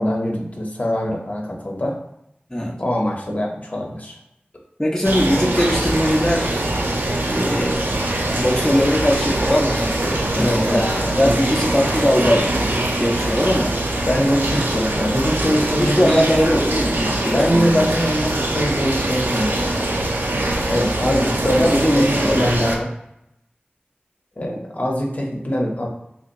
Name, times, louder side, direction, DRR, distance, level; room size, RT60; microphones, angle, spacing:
voice 1, 0.0-2.0 2.8-4.2 10.3-11.3 14.0-16.2 17.3-20.0 20.7-22.9 24.4-25.9, equal, 45° left, -1 dB, 0.8 m, -23 dB
voice 2, 4.8-6.6 7.3-7.8 8.3-10.9 11.2-12.5 13.0-13.8 15.8-17.9 21.0-21.3 21.6-22.6, equal, 15° left, -4 dB, 0.6 m, -20 dB
sound 1, 5.0-22.8, right 1 dB, 70° right, 0.5 m, -23 dB
3.5 x 2.8 x 2.5 m, 0.81 s
wide cardioid pair, 40°, 4 cm